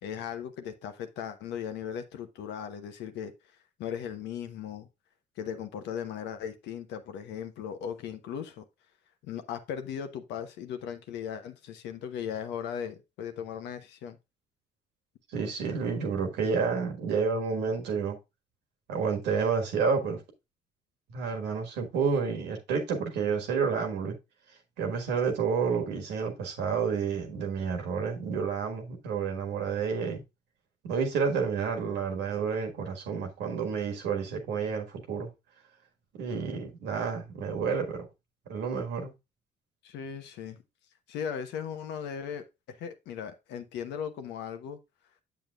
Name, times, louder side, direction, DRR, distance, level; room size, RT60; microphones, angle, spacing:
voice 1, 0.0-3.3 3.8-4.9 5.4-8.6 9.2-14.2 39.8-40.6 41.1-44.8, left 8 dB, 80° left, 0.9 m, -37 dB
voice 2, 15.3-18.2 18.9-20.2 21.1-24.2 24.8-30.2 30.8-35.3 36.1-38.1 38.5-39.1, right 5 dB, 80° right, 1.5 m, -30 dB
7.7 x 7.1 x 2.3 m
supercardioid pair, 65°, 18 cm